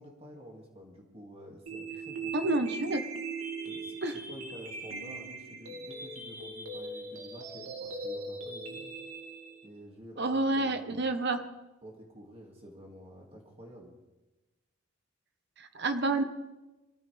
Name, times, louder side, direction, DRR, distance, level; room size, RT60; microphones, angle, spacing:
voice 1, 0.0-2.6 3.6-8.9 9.6-11.3 11.8-13.9, equal, 25° right, -1 dB, 2.4 m, -50 dB
sound 1, 1.7-9.7, right 3 dB, 80° right, 2.4 m, -40 dB
voice 2, 2.3-3.0 4.0-4.2 10.2-11.4 15.6-16.2, right 2 dB, 50° right, 8 dB, 1.3 m, -29 dB
23.5 x 15.0 x 3.5 m, 1.1 s
head